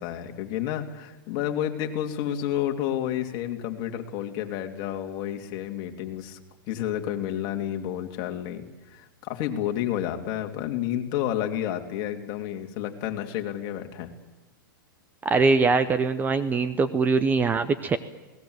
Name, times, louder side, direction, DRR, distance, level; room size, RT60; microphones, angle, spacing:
voice 1, 0.0-6.4 6.7-14.1, left 11 dB, 40° left, 4 dB, 2.6 m, -30 dB
voice 2, 15.2-18.0, right 4 dB, 15° right, 12 dB, 0.8 m, -22 dB
27.5 x 19.0 x 8.0 m, 1.1 s
hypercardioid pair, 140°, 12 cm